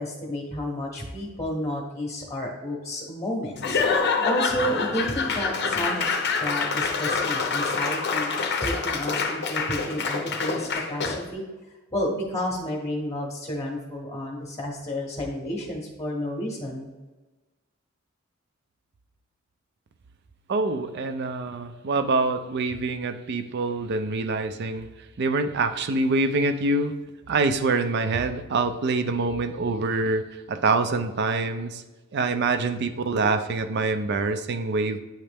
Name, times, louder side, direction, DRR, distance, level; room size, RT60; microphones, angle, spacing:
voice 1, 0.0-3.8 4.2-6.1 6.4-11.4 11.9-16.9, equal, 15° left, 1 dB, 0.9 m, -31 dB
Laughter / Applause / Crowd, 3.6-11.3, left 4 dB, 55° left, 0.6 m, -26 dB
voice 2, 20.5-24.9 25.2-26.9 27.3-31.8 32.1-35.0, right 3 dB, 55° right, 9 dB, 0.4 m, -25 dB
8.8 x 3.2 x 3.4 m, 1.2 s
head